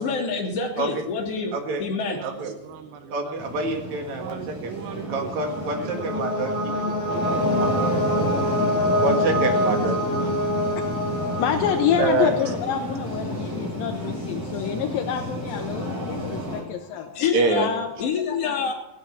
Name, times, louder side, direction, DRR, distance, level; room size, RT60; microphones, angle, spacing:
voice 1, 0.0-3.1 4.2-4.3 16.9-17.7 18.0-18.7, left 5 dB, 45° left, -1 dB, 3.5 m, -28 dB
voice 2, 1.5-1.9 2.2-2.6 3.1-4.8 5.1-6.5 7.6-7.7 9.0-10.0 12.0-12.3 17.3-17.7, right 3 dB, 55° right, 3 dB, 3.0 m, -26 dB
voice 3, 2.7-3.3 4.2-5.6 6.4-7.7 9.4-9.7 10.2-10.3 10.7-10.8, right 13 dB, 80° right, 9 dB, 2.5 m, -39 dB
sound 1, 3.4-16.6, equal, 30° right, 8.3 m, -31 dB
sound 2, 4.9-12.7, left 1 dB, 25° left, 2.6 m, -26 dB
voice 4, 11.4-17.3 17.5-17.9 18.3-18.5, left 9 dB, 80° left, 4 dB, 2.6 m, -27 dB
16.5 x 9.6 x 8.5 m, 0.97 s
omnidirectional pair, 4.2 m